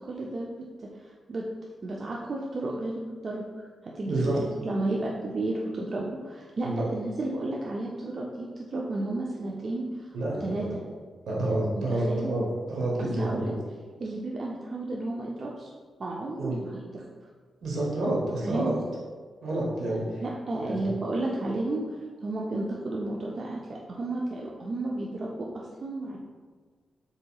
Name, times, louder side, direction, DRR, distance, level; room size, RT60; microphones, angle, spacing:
voice 1, 0.0-1.5 1.8-10.1 10.4-10.8 11.8-12.3 13.0-13.5 14.0-15.7 16.0-17.0 18.4-18.6 20.2-21.8 22.2-26.2, right 2 dB, 55° right, -3 dB, 0.4 m, -33 dB
voice 2, 4.0-4.4 6.6-6.9 10.1-10.8 11.3-13.5 16.4-16.6 17.6-18.7 19.4-20.2 20.6-20.9, right 1 dB, 80° right, -4 dB, 0.9 m, -29 dB
3.9 x 2.7 x 2.3 m, 1.5 s
cardioid pair, 65°, 0 cm